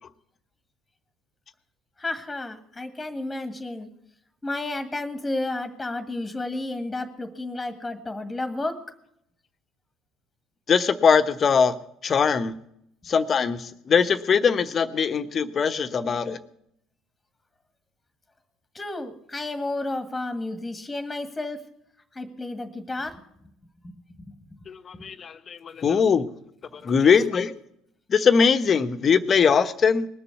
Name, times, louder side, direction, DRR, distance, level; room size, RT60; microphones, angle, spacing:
voice 1, 2.0-3.9 4.4-8.8 18.7-21.6 22.1-23.2 23.8-24.6, left 2 dB, 15° left, 8 dB, 1.8 m, -32 dB
voice 2, 10.7-11.7 12.0-12.6 13.0-16.4 24.7-26.3 26.7-27.5 28.1-30.1, left 6 dB, 40° left, 11 dB, 1.1 m, -21 dB
20.0 x 7.0 x 9.3 m, 0.75 s
hypercardioid pair, 60°, 0 cm